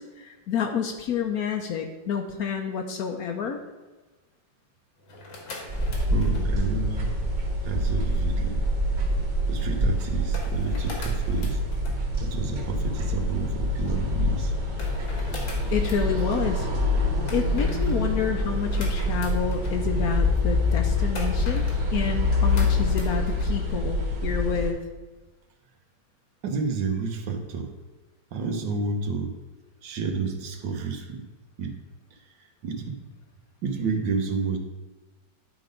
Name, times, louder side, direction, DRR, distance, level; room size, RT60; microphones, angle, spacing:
voice 1, 0.0-3.6 15.4-16.7 17.3-21.6 21.9-24.8, left 7 dB, 65° left, 4 dB, 1.0 m, -29 dB
sound 1, 5.0-23.5, left 1 dB, 85° left, 2.3 m, -43 dB
sound 2, 5.7-24.7, left 1 dB, 55° right, 1.9 m, -25 dB
voice 2, 6.1-7.1 7.6-8.6 9.5-11.6 12.2-14.5 26.4-27.7 28.3-29.3 29.8-31.2 31.6-31.8 32.1-33.0 33.6-34.6, right 5 dB, 75° right, 5 dB, 1.6 m, -30 dB
10.5 x 4.0 x 5.1 m, 1.2 s
omnidirectional pair, 2.0 m